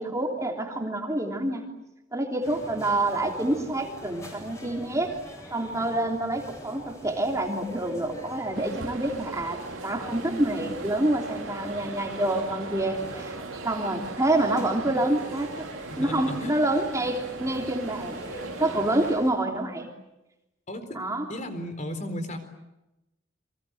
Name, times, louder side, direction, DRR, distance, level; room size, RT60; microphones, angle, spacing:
voice 1, 0.0-1.7 2.1-5.1 5.5-13.4 13.6-15.7 16.0-18.2 18.6-19.9 20.9-21.3, right 1 dB, 15° right, 2 dB, 3.2 m, -27 dB
sound 1, 2.4-19.3, equal, 15° left, 7.8 m, -44 dB
sound 2, 8.5-19.1, right 3 dB, 85° right, 2.8 m, -39 dB
voice 2, 15.9-16.5 20.7-21.0 21.3-22.4, left 1 dB, 40° left, 8 dB, 4.1 m, -34 dB
29.5 x 24.5 x 7.9 m, 0.95 s
head